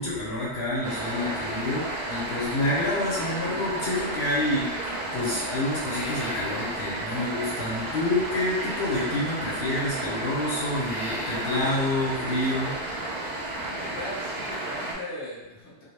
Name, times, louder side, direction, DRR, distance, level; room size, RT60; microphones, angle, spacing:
voice 1, 0.0-12.7, left 1 dB, 60° left, -7 dB, 0.8 m, -28 dB
sound 1, 0.8-14.9, right 1 dB, 50° right, 0.6 m, -33 dB
sound 2, 2.4-3.6 3.9-7.6 9.2-10.3 10.8-12.1 13.6-14.7, left 1 dB, 90° left, 1.0 m, -44 dB
voice 2, 13.7-15.8, left 1 dB, 15° left, -8 dB, 0.7 m, -38 dB
2.2 x 2.1 x 3.1 m, 0.99 s
omnidirectional pair, 1.2 m